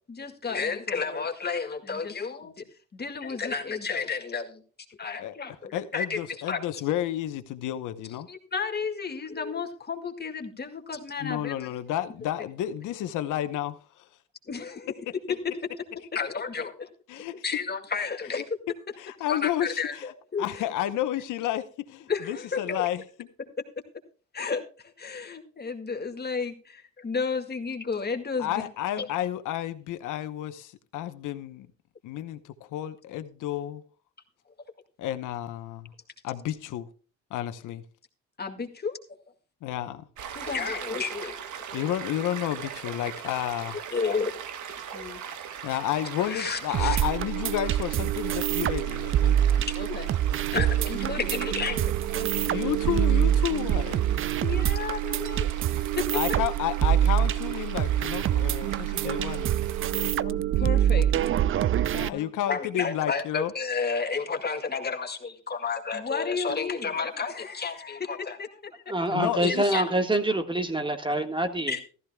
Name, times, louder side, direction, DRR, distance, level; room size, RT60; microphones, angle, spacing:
voice 1, 0.1-2.6 2.9-4.6 5.0-6.2 6.5-6.6 8.3-11.7 14.5-14.9 15.3-15.4 16.1-16.9 17.2-18.6 19.3-20.6 22.1-22.9 24.3-28.6 29.0-29.1 38.4-39.0 40.4-41.3 43.9-44.3 44.9-45.2 46.3-47.0 49.6-50.1 50.5-52.7 54.4-56.1 59.0-59.2 60.1-61.3 62.1-68.8 69.4-69.8 71.7-71.8, left 5 dB, 35° left, 2.0 m, -32 dB
voice 2, 5.7-8.3 11.2-14.1 17.1-17.4 19.0-20.0 20.4-23.3 28.4-31.7 32.0-33.8 35.0-35.9 36.2-36.9 37.3-37.8 39.6-40.0 41.7-43.8 45.6-49.7 52.5-54.0 56.1-59.5 60.0-60.2 61.9-63.5 69.1-69.6, left 12 dB, 85° left, 0.9 m, -31 dB
Stream, 40.2-60.1, right 8 dB, 75° right, 1.4 m, -41 dB
sound 1, 46.7-62.1, right 11 dB, 45° right, 0.4 m, -25 dB
voice 3, 68.9-71.7, right 1 dB, 15° right, 1.6 m, -26 dB
15.0 x 13.5 x 2.3 m
cardioid pair, 90°, 30 cm